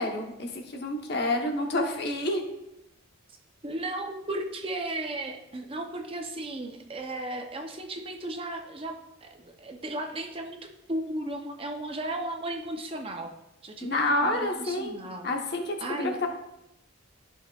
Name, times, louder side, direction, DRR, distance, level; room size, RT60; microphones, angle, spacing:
voice 1, 0.0-2.4 13.8-15.0 15.2-16.3, left 2 dB, 50° left, 2 dB, 1.1 m, -28 dB
voice 2, 3.6-10.6 10.9-13.3 13.6-15.3 15.8-16.2, right 1 dB, 25° right, 3 dB, 0.6 m, -35 dB
12.5 x 5.4 x 2.4 m, 0.88 s
head